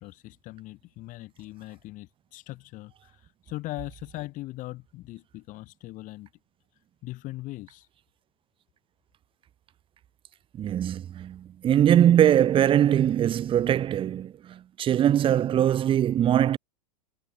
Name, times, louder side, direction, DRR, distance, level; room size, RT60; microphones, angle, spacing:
voice 1, 0.0-6.3 7.0-7.9, left 18 dB, 40° left, 6.2 m, -40 dB
voice 2, 10.6-16.6, right 10 dB, 25° right, 1.3 m, -22 dB
hypercardioid pair, 105°, 21 cm